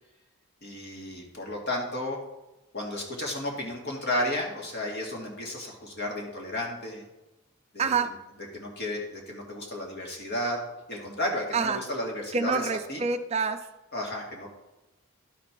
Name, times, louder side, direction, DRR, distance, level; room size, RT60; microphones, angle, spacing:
voice 1, 0.6-2.2 2.7-7.1 7.7-7.9 8.5-10.6 10.9-12.6 12.9-13.0 13.9-14.5, left 1 dB, 50° left, 0 dB, 2.0 m, -33 dB
voice 2, 7.8-8.1 11.5-11.8 12.3-13.6, right 5 dB, 30° right, 8 dB, 0.4 m, -27 dB
11.5 x 4.3 x 6.0 m, 1.0 s
head